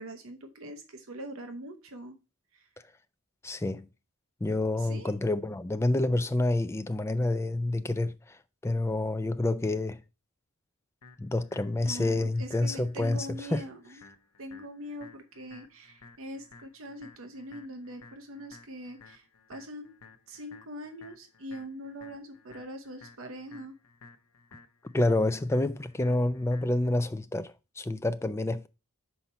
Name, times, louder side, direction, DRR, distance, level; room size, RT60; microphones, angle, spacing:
voice 1, 0.0-2.2 2.5-2.7 4.8-5.1 11.8-14.0 14.4-20.0 20.3-23.7, equal, 65° right, 0.8 m, -43 dB
voice 2, 3.4-3.9 4.4-8.4 8.6-10.0 11.2-13.6 24.9-28.7, left 2 dB, 10° left, 0.3 m, -28 dB
sound 1, 11.0-27.0, left 4 dB, 80° left, 0.8 m, -55 dB
5.7 x 4.2 x 5.5 m
head